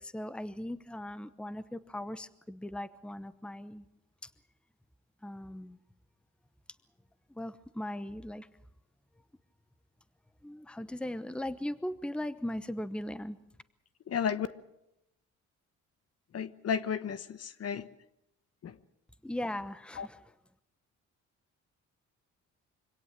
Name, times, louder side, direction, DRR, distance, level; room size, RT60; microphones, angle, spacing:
voice 1, 0.0-3.9 5.2-5.8 7.3-8.5 10.4-13.4 19.2-20.2, left 1 dB, 5° left, 14 dB, 0.9 m, -38 dB
voice 2, 14.1-14.5 16.3-17.9 18.6-18.8 20.0-20.1, left 7 dB, 55° left, 14 dB, 1.1 m, -33 dB
25.0 x 17.0 x 7.4 m, 0.86 s
cardioid pair, 90°, 30 cm